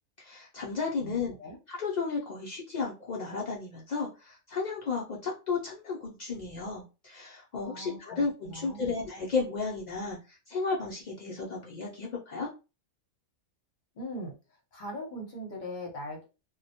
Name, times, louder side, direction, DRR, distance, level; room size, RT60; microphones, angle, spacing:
voice 1, 0.2-1.3 1.7-12.5, left 4 dB, 90° left, -3 dB, 0.3 m, -33 dB
voice 2, 1.0-1.6 7.6-8.9 13.9-14.3 14.7-16.2, equal, 45° left, 0 dB, 0.8 m, -40 dB
2.1 x 2.1 x 2.7 m, 0.30 s
omnidirectional pair, 1.3 m